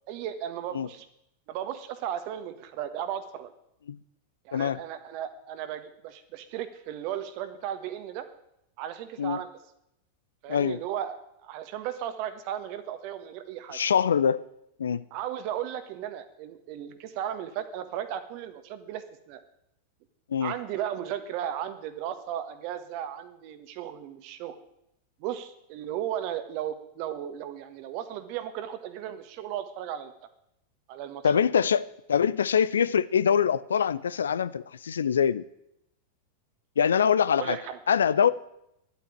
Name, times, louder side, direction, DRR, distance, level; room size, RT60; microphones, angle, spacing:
voice 1, 0.1-1.1 1.5-3.5 4.4-8.3 8.8-9.6 10.4-13.8 15.1-19.4 20.4-24.5 25.2-30.1 30.9-31.4 37.4-37.8, right 10 dB, 45° right, 1.5 m, -35 dB
voice 2, 10.5-10.8 13.7-14.4 14.8-15.0 20.3-20.5 31.2-35.4 36.8-37.6 37.9-38.3, left 7 dB, 65° left, 0.5 m, -24 dB
11.5 x 8.3 x 10.0 m
figure-of-eight pair, 90°, 0 cm